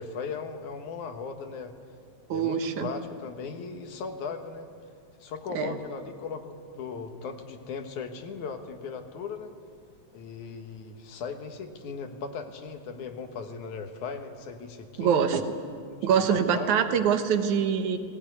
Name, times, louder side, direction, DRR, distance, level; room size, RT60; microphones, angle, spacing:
voice 1, 0.0-1.7 2.3-4.7 5.2-9.5 10.1-15.2 16.0-17.0, left 5 dB, 80° left, 6 dB, 2.9 m, -38 dB
voice 2, 2.3-2.9 5.6-5.8 15.0-15.5 16.0-18.0, right 7 dB, 80° right, 7 dB, 2.6 m, -24 dB
19.0 x 18.5 x 9.5 m, 2.2 s
omnidirectional pair, 3.4 m